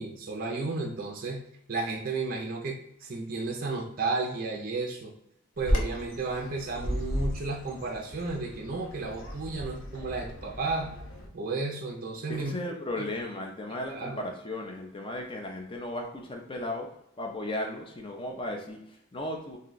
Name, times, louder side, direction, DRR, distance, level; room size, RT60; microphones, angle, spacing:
voice 1, 0.0-1.4 1.7-5.1 5.6-10.9 11.3-12.5 13.0-13.1 13.9-14.2, right 3 dB, 40° right, 1 dB, 0.5 m, -33 dB
Bird vocalization bird call bird song, 5.6-11.3, equal, 60° left, 0.7 m, -34 dB
voice 2, 12.3-16.9 17.2-19.6, left 1 dB, 25° left, 2 dB, 0.5 m, -35 dB
2.7 x 2.2 x 3.9 m, 0.76 s
head